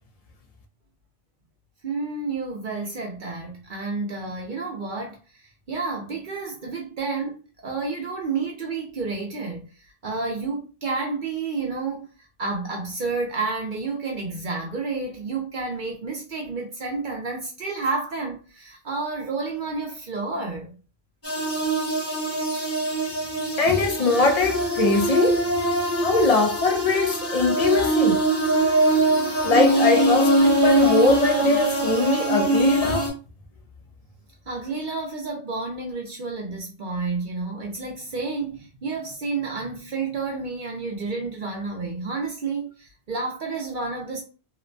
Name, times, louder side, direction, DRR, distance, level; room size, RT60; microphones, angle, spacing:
voice 1, 1.8-5.2 5.7-12.1 12.4-20.8 34.5-44.2, right 4 dB, 55° right, 0.7 m, -30 dB
sound 1, 21.2-33.1, right 1 dB, 15° left, 0.8 m, -22 dB
voice 2, 23.6-25.4 26.0-28.2 29.4-33.1, left 3 dB, 60° left, 0.4 m, -21 dB
2.8 x 2.1 x 2.5 m
omnidirectional pair, 1.1 m